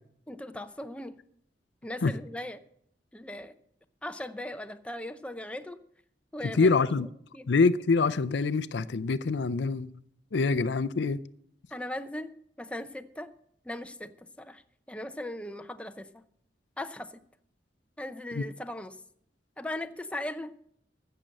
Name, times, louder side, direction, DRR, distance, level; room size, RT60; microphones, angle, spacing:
voice 1, 0.3-1.2 1.8-2.6 3.1-3.5 4.0-5.8 6.3-6.7 7.3-7.5 11.7-12.3 12.6-13.3 13.6-14.6 14.9-16.2 16.8-17.2 18.0-19.0 19.6-20.5, left 1 dB, 5° left, 9 dB, 0.6 m, -38 dB
voice 2, 6.6-7.1 7.5-9.9 10.3-11.2 18.3-18.4, left 4 dB, 80° left, 13 dB, 0.5 m, -25 dB
15.0 x 6.7 x 7.6 m, 0.69 s
head